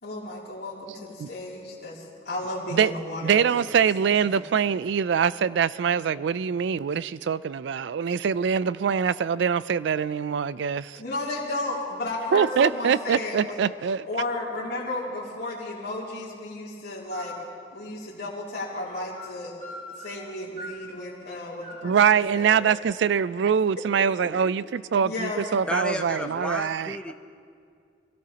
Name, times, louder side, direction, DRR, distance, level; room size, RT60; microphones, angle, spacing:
voice 1, 0.0-3.9 4.3-4.7 10.9-13.6 14.1-17.4 17.7-19.6 20.0-22.6 23.8-24.3 25.0-25.4, left 2 dB, 55° left, 2.9 m, -34 dB
voice 2, 3.2-11.0 12.3-14.1 21.8-27.1, right 7 dB, 70° right, 0.3 m, -24 dB
sound 1, 17.1-17.5 18.8-19.3 19.6-20.3 20.6-22.0, left 1 dB, 40° right, 2.1 m, -42 dB
voice 3, 25.7-27.1, left 1 dB, 5° left, 0.6 m, -31 dB
23.0 x 17.0 x 2.9 m
head